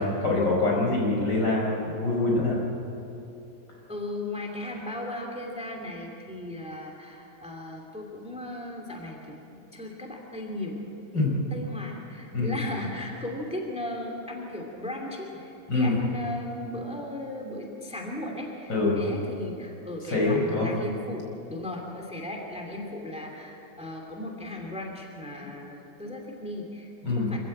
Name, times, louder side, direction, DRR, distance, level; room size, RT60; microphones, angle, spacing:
voice 1, 0.0-2.6 11.1-11.3 12.3-12.5 15.7-15.9 18.7-19.0 20.1-20.7 27.0-27.3, left 2 dB, 65° left, -2 dB, 5.5 m, -24 dB
voice 2, 3.9-11.2 11.5-27.4, left 1 dB, 5° right, 1 dB, 2.6 m, -37 dB
25.5 x 15.0 x 8.7 m, 2.9 s
omnidirectional pair, 2.1 m